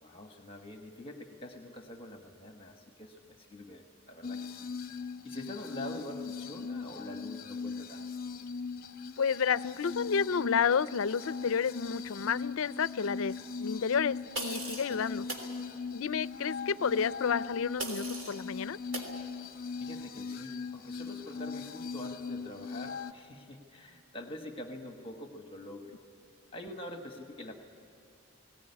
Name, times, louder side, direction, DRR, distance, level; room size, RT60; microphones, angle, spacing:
voice 1, 0.0-4.7 5.2-8.0 14.8-15.0 19.8-25.9 26.5-27.5, left 1 dB, 25° left, 4 dB, 1.3 m, -45 dB
sound 1, 4.2-23.1, left 5 dB, 40° left, 0.8 m, -40 dB
voice 2, 9.2-15.2 15.9-18.8, left 6 dB, 70° left, 17 dB, 0.5 m, -30 dB
sound 2, 14.3-14.9 15.3-15.5 17.8-18.4 18.9-19.1, right 2 dB, 60° right, 3.4 m, -38 dB
19.0 x 18.5 x 9.8 m, 3.0 s
head